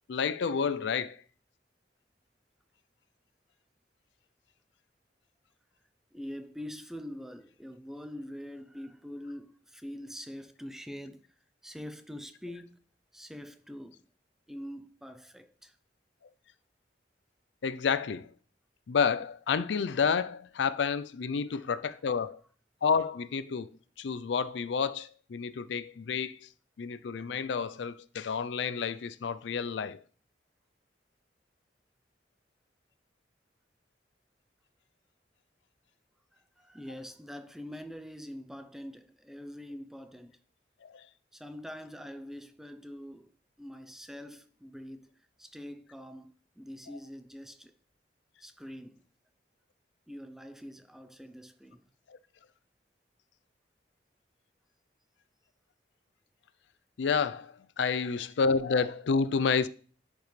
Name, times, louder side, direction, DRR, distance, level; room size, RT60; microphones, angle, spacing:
voice 1, 0.1-1.2 17.6-18.3 18.9-22.4 22.8-23.7 24.0-26.5 26.8-30.0 40.8-41.1 52.1-52.2 57.0-59.7, left 5 dB, 80° left, 0.4 m, -30 dB
voice 2, 6.1-11.3 11.6-12.8 13.1-14.1 14.5-15.8 21.5-21.7 36.6-40.4 41.3-43.3 43.6-47.7 48.4-49.1 50.1-51.9, equal, ahead, 0.4 m, -44 dB
10.5 x 5.3 x 3.2 m
head